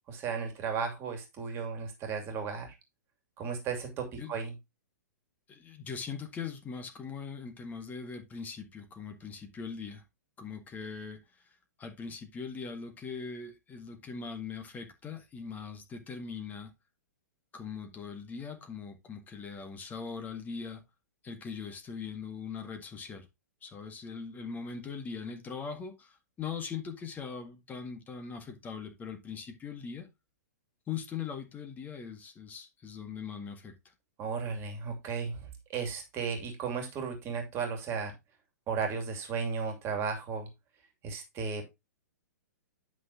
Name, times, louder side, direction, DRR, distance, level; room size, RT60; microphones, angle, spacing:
voice 1, 0.1-2.7 3.4-4.5 34.2-38.1 38.7-40.5 41.0-41.6, right 5 dB, 25° right, 2.6 m, -35 dB
voice 2, 5.5-10.0 10.4-16.7 17.5-20.8 21.2-23.3 23.6-30.1 30.9-33.7, left 6 dB, 20° left, 1.8 m, -41 dB
11.0 x 6.1 x 2.8 m
figure-of-eight pair, 110°, 9 cm